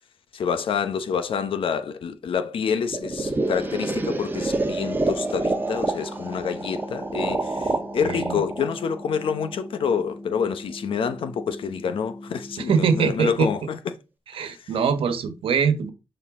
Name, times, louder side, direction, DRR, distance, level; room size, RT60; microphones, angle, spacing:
voice 1, 0.3-13.8 14.4-14.7, left 6 dB, 75° left, 1.0 m, -27 dB
sound 1, 2.9-9.8, right 2 dB, 20° right, 1.1 m, -28 dB
sound 2, 3.2-13.2, left 1 dB, 25° left, 2.3 m, -41 dB
voice 2, 7.5-8.4 12.6-13.5 14.3-15.9, right 6 dB, 80° right, 1.2 m, -23 dB
11.0 x 4.1 x 3.7 m
cardioid pair, 105°, 9 cm